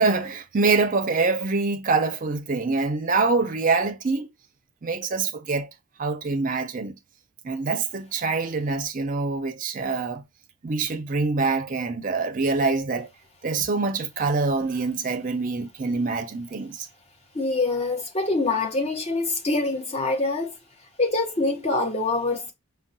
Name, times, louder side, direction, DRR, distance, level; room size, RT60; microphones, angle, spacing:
voice 1, 0.0-4.3 4.8-5.7 6.0-7.0 7.4-10.2 10.6-13.1 13.4-16.9, right 4 dB, 35° right, 0.5 m, -25 dB
voice 2, 17.3-20.5 21.0-22.5, left 3 dB, 30° left, 0.8 m, -25 dB
4.5 x 2.2 x 2.6 m
head